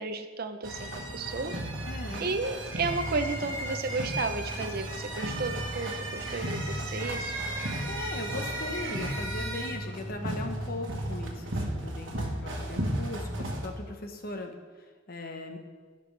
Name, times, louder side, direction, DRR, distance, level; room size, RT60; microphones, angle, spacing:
voice 1, 0.0-1.5 2.2-7.3, right 3 dB, 50° right, 8 dB, 0.6 m, -33 dB
sound 1, 0.6-13.7, right 1 dB, 70° right, 1.4 m, -34 dB
voice 2, 1.9-2.3 7.9-15.6, left 2 dB, 50° left, 4 dB, 1.1 m, -39 dB
16.5 x 6.0 x 3.3 m, 1.5 s
head